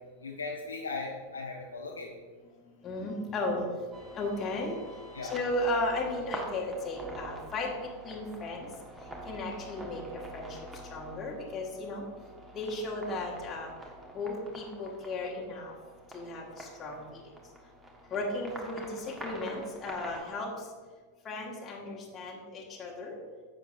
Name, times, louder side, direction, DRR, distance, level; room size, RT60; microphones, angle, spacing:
voice 1, 0.2-2.1 5.1-5.3, left 3 dB, 75° left, -2 dB, 0.8 m, -38 dB
voice 2, 2.8-3.6 4.2-4.8 5.3-8.7 9.3-10.0 10.3-10.5 10.9-12.0 12.5-13.7 14.1-15.7 16.1-17.0 18.1-20.5 21.2-23.2, left 2 dB, 25° left, -3 dB, 1.5 m, -35 dB
sound 1, 3.9-20.2, right 1 dB, 10° right, 1.5 m, -46 dB
10.5 x 7.5 x 2.6 m, 1.5 s
figure-of-eight pair, 90°, 0 cm